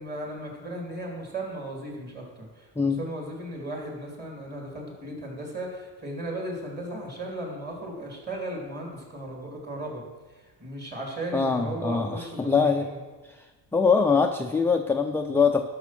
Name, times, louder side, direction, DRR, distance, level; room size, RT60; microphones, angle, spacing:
voice 1, 0.0-13.0, right 1 dB, 20° right, 0 dB, 3.2 m, -36 dB
voice 2, 11.3-12.9 13.3-13.4 13.7-15.6, left 5 dB, 5° left, 3 dB, 0.3 m, -23 dB
12.5 x 6.3 x 5.9 m, 1.3 s
cardioid pair, 120°, 45 cm